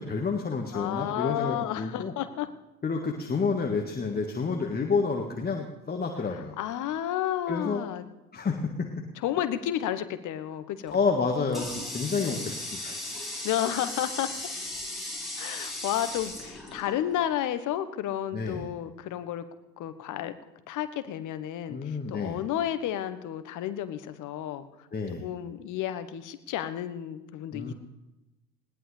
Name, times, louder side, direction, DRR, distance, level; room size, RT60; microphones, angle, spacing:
voice 1, 0.0-2.1 2.8-6.6 7.5-7.8 8.3-8.9 10.9-13.0 18.3-18.7 21.7-22.4 24.9-25.2 27.5-27.7, left 4 dB, 20° left, 2 dB, 1.8 m, -29 dB
voice 2, 0.7-2.5 6.3-8.0 9.2-11.0 12.2-12.6 13.4-14.3 15.4-19.4 19.8-20.3 20.7-24.7 25.2-27.7, left 11 dB, 40° left, 11 dB, 1.3 m, -32 dB
Water tap faucet, 10.9-17.4, left 1 dB, ahead, 6.0 m, -37 dB
20.5 x 18.5 x 3.4 m, 1.0 s
figure-of-eight pair, 70°, 48 cm